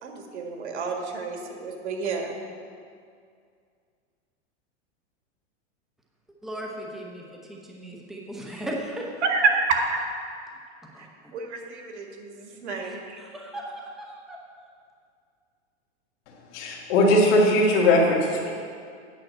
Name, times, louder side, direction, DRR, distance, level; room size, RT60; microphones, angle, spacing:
voice 1, 0.0-2.4 9.2-10.3 11.0-11.1 11.3-13.2, right 4 dB, 90° right, 2 dB, 1.9 m, -28 dB
voice 2, 6.4-9.1 10.9-11.3 12.8-14.4, right 1 dB, ahead, -1 dB, 0.9 m, -37 dB
voice 3, 16.5-18.5, left 1 dB, 45° left, -1 dB, 2.0 m, -19 dB
9.1 x 5.9 x 7.6 m, 2.2 s
supercardioid pair, 150°, 33 cm